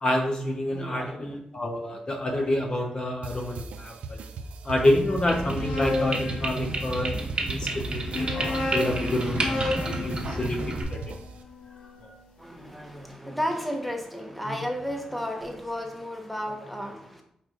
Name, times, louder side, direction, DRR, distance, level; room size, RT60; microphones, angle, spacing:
voice 1, 0.0-4.2 4.6-7.1 7.5-11.0 12.0-12.1, left 1 dB, 45° left, 1 dB, 0.9 m, -28 dB
voice 2, 0.7-1.3 1.8-2.0 12.4-17.2, equal, ahead, 2 dB, 1.0 m, -33 dB
sound 1, 3.2-11.4, right 3 dB, 85° right, 0.4 m, -38 dB
sound 2, 5.3-7.2 8.0-12.1, left 2 dB, 85° left, 0.9 m, -33 dB
sound 3, 5.3-10.8, right 2 dB, 45° right, 1.2 m, -31 dB
4.9 x 4.3 x 2.5 m, 0.72 s
cardioid pair, 60°, 2 cm